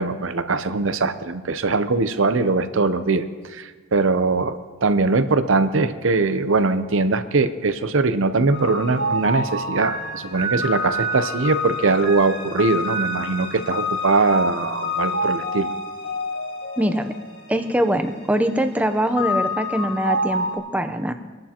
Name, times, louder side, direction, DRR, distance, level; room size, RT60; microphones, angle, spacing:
voice 1, 0.0-15.7, right 3 dB, 70° right, 10 dB, 0.7 m, -21 dB
sound 1, 8.5-20.6, left 1 dB, 75° left, 3.6 m, -28 dB
voice 2, 16.8-17.1 17.5-21.1, right 1 dB, 5° right, 8 dB, 0.7 m, -22 dB
24.0 x 11.5 x 3.0 m, 1.4 s
head